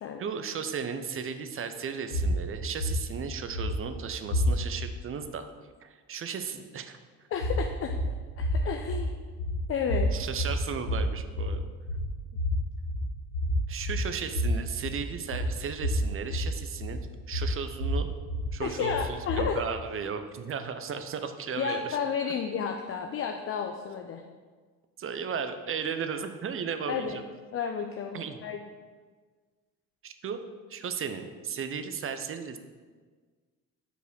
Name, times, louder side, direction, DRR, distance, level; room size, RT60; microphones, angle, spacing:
voice 1, 0.2-5.5 5.8-7.0 10.1-11.7 13.7-17.0 17.3-18.1 18.5-21.9 22.2-22.3 25.0-27.2 28.1-28.4 30.0-30.4 30.7-32.6, right 6 dB, 30° right, 9 dB, 0.6 m, -35 dB
sound 1, 2.1-4.9 7.3-19.7, equal, 90° left, 2.0 m, -30 dB
voice 2, 7.3-7.9 8.4-9.2 9.7-10.1 18.6-19.6 21.6-24.2 26.9-27.2 27.5-28.6, left 6 dB, 30° left, 4 dB, 0.5 m, -32 dB
4.9 x 4.9 x 6.2 m, 1.5 s
figure-of-eight pair, 55°, 45 cm